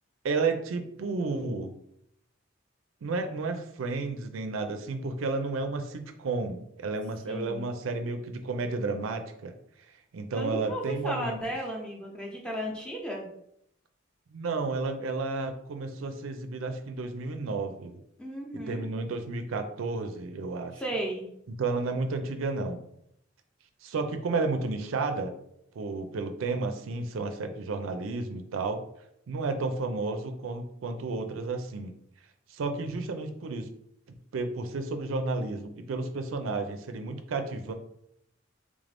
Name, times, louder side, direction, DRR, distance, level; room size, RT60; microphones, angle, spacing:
voice 1, 0.2-1.7 3.0-9.5 10.1-11.4 14.3-18.0 18.7-20.8 21.6-22.8 23.8-25.3 25.8-28.8 29.3-31.9 32.5-33.7 34.3-37.7, right 3 dB, 75° right, 7 dB, 0.4 m, -32 dB
voice 2, 7.3-7.7 10.3-13.3 18.2-18.9 20.8-21.3, right 1 dB, 5° left, -2 dB, 0.6 m, -34 dB
3.5 x 2.5 x 3.3 m, 0.73 s
head